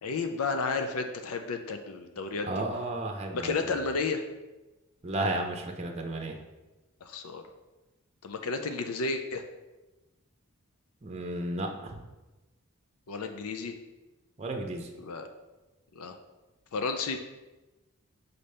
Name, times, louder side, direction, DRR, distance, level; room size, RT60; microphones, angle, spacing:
voice 1, 0.0-2.5 3.3-4.2 7.0-7.4 8.2-9.4 13.1-13.7 15.0-15.3 16.0-16.2 16.7-17.2, left 4 dB, 80° left, 6 dB, 0.5 m, -32 dB
voice 2, 2.5-3.8 5.0-6.4 11.0-12.0 14.4-14.9, right 1 dB, 30° right, 2 dB, 0.7 m, -33 dB
5.1 x 4.2 x 5.6 m, 1.1 s
head